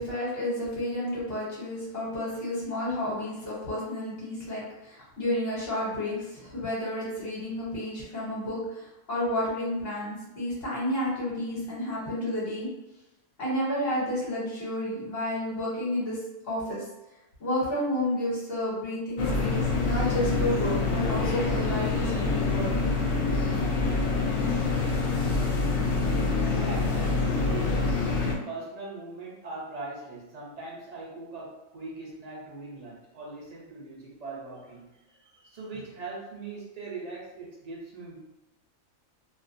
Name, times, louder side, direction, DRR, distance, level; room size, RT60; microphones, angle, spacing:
voice 1, 0.0-12.7 13.4-16.2 16.4-16.8 17.4-22.7, left 1 dB, 50° left, -6 dB, 1.0 m, -31 dB
sound 1, 19.2-28.4, left 3 dB, 70° left, 0.5 m, -26 dB
voice 2, 26.5-27.8 28.5-38.2, right 3 dB, 50° right, -4 dB, 0.5 m, -40 dB
2.4 x 2.1 x 2.5 m, 0.96 s
omnidirectional pair, 1.4 m